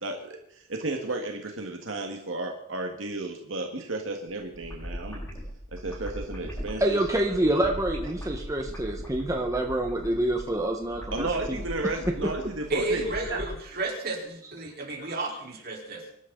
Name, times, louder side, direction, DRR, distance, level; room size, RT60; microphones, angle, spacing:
voice 1, 0.0-5.2 5.7-7.0 11.1-13.4, right 2 dB, 70° right, 3 dB, 1.9 m, -33 dB
sound 1, 4.3-13.5, equal, 15° left, 7.0 m, -39 dB
voice 2, 6.8-11.6, right 1 dB, 15° right, 2 dB, 1.4 m, -27 dB
voice 3, 12.7-16.1, right 2 dB, 50° right, -1 dB, 4.5 m, -32 dB
24.5 x 12.5 x 4.0 m, 0.74 s
head